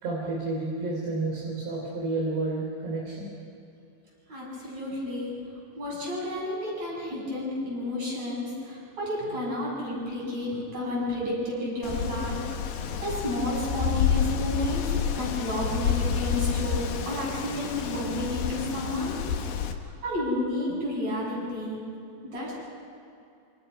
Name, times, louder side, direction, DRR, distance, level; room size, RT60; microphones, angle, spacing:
voice 1, 0.0-3.3, right 2 dB, 65° right, -3 dB, 5.6 m, -30 dB
voice 2, 4.3-5.4 5.8-12.5 12.7-14.9 15.2-19.2 20.0-21.8 22.2-22.5, left 1 dB, 40° right, -4 dB, 9.1 m, -31 dB
Wind, 11.8-19.7, left 7 dB, 65° left, 2.9 m, -29 dB
27.5 x 26.5 x 5.7 m, 2.6 s
omnidirectional pair, 5.1 m